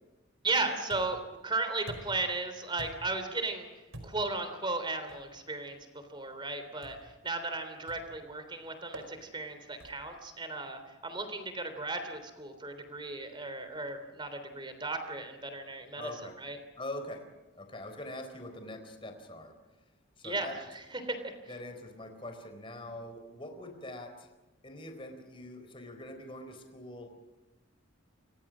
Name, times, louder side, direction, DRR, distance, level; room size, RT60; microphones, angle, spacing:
voice 1, 0.4-3.7 4.0-16.1 16.4-16.6 20.2-21.3, right 3 dB, 25° right, 8 dB, 3.4 m, -35 dB
sound 1, 0.9-1.3 1.9-2.3 2.8-3.2 3.9-4.4 5.1-5.3 6.8-7.2 7.9-8.2 8.9-9.1 9.8-10.1, right 1 dB, 75° right, 4.9 m, -47 dB
voice 2, 16.0-16.3 16.8-17.3 17.6-19.5 20.2-20.6 21.5-24.3 24.6-27.2, left 1 dB, 25° left, 6 dB, 4.1 m, -43 dB
29.5 x 25.0 x 6.3 m, 1.1 s
head